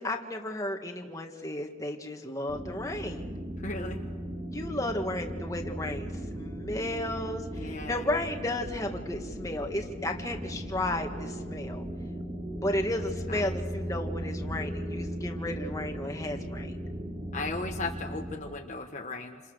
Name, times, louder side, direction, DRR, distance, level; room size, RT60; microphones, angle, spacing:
voice 1, 0.0-3.3 4.5-11.8 12.6-16.7, left 1 dB, 20° left, 3 dB, 2.0 m, -33 dB
sound 1, 2.5-18.4, equal, 40° right, 3.4 m, -37 dB
voice 2, 3.6-4.0 7.5-8.0 13.3-13.5 17.3-19.4, left 3 dB, 40° left, 2 dB, 1.4 m, -36 dB
29.0 x 27.5 x 6.6 m, 1.4 s
head